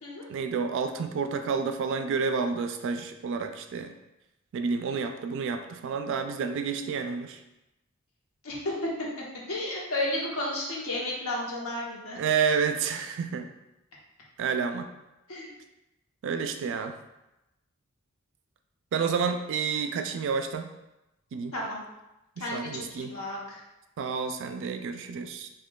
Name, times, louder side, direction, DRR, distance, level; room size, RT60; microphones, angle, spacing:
voice 1, 0.3-3.9 4.5-7.4 12.1-13.5 14.4-14.9 16.2-17.0 18.9-20.7 21.3-21.5 22.4-23.1 24.0-25.5, right 5 dB, 60° right, 8 dB, 0.3 m, -30 dB
voice 2, 9.5-12.2 15.3-15.5 21.5-21.8 22.4-23.6, left 1 dB, 80° left, -3 dB, 0.9 m, -32 dB
5.1 x 2.3 x 2.3 m, 0.96 s
head